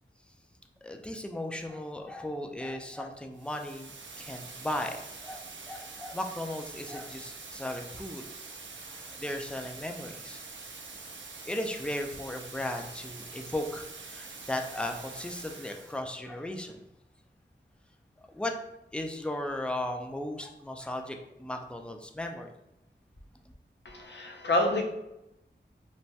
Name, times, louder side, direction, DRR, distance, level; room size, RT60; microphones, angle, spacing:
voice 1, 0.8-3.9 4.2-8.3 9.0-10.4 11.5-16.8 18.3-18.5 18.9-22.5, left 1 dB, 5° left, 4 dB, 0.3 m, -36 dB
sound 1, 3.3-16.0, right 4 dB, 70° right, 0.4 m, -45 dB
voice 2, 23.8-24.8, left 2 dB, 65° left, 2 dB, 0.5 m, -28 dB
3.1 x 2.2 x 2.7 m, 0.89 s
wide cardioid pair, 50°, 20 cm